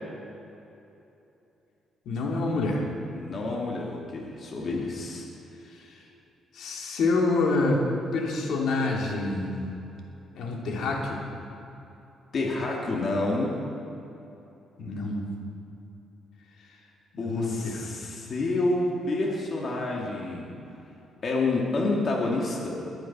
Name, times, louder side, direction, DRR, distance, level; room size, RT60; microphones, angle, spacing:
voice 1, 2.0-2.8 4.6-4.8 5.7-6.0 6.5-7.8 8.1-9.5 10.3-11.2 14.8-15.3 17.1-17.9, left 3 dB, 75° left, -1 dB, 2.8 m, -27 dB
voice 2, 3.1-5.2 12.3-13.6 17.2-20.6 21.2-22.8, left 2 dB, 45° left, -2 dB, 2.6 m, -28 dB
22.5 x 7.8 x 6.1 m, 2.9 s
cardioid pair, 90°, 0 cm